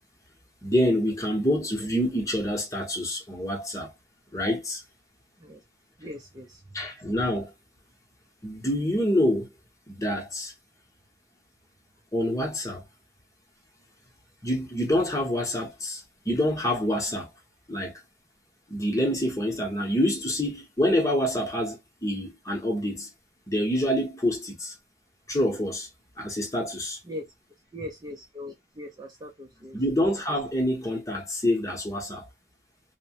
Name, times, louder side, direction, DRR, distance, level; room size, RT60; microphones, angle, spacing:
voice 1, 0.6-3.9 4.3-4.8 6.7-7.5 8.4-9.5 9.9-10.5 12.1-12.8 14.4-17.3 17.7-17.9 18.7-23.1 23.5-24.7 25.3-25.9 26.2-27.0 29.7-32.2, left 1 dB, 20° left, 0.9 m, -26 dB
voice 2, 6.0-6.6 27.0-27.3 27.7-29.8, left 1 dB, 25° right, 0.5 m, -40 dB
2.8 x 2.1 x 2.8 m
head